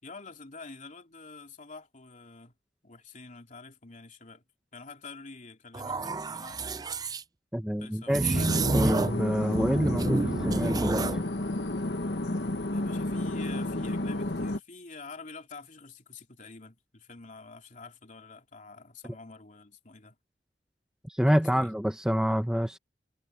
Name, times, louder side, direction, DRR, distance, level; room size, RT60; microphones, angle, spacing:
voice 1, 0.0-2.5 2.8-4.4 4.7-6.7 7.8-8.2 12.7-20.2 21.2-21.7, left 4 dB, 45° left, 3.2 m, -47 dB
sound 1, 5.7-7.2 8.1-9.2 9.5-11.2, right 2 dB, 20° right, 0.5 m, -29 dB
voice 2, 7.5-8.4 8.7-11.1 21.1-22.8, equal, 5° right, 0.9 m, -27 dB
sound 2, 8.3-14.6, left 1 dB, 70° left, 1.4 m, -31 dB
head